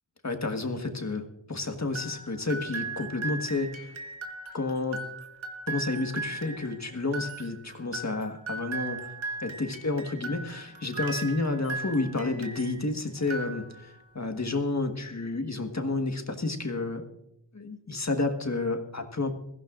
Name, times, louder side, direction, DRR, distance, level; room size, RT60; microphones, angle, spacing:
voice 1, 0.2-3.9 4.5-5.0 5.7-9.0 9.4-17.0 17.5-19.3, left 3 dB, 35° left, 5 dB, 1.5 m, -30 dB
sound 1, 1.9-12.8 13.2-14.0, right 3 dB, 70° right, 1.4 m, -38 dB
21.5 x 15.0 x 2.5 m, 0.80 s
wide cardioid pair, 75°, 48 cm